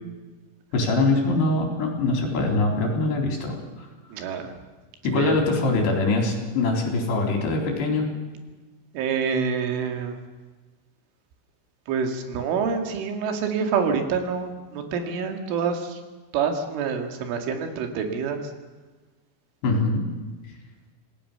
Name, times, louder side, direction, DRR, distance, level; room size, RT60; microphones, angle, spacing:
voice 1, 0.7-3.9 5.0-8.1 19.6-20.0, left 2 dB, 65° left, 2 dB, 5.7 m, -23 dB
voice 2, 4.1-4.5 5.1-5.4 8.9-10.2 11.9-16.0 16.3-18.4, right 6 dB, 85° right, 5 dB, 4.7 m, -27 dB
27.0 x 18.0 x 6.8 m, 1.3 s
omnidirectional pair, 5.4 m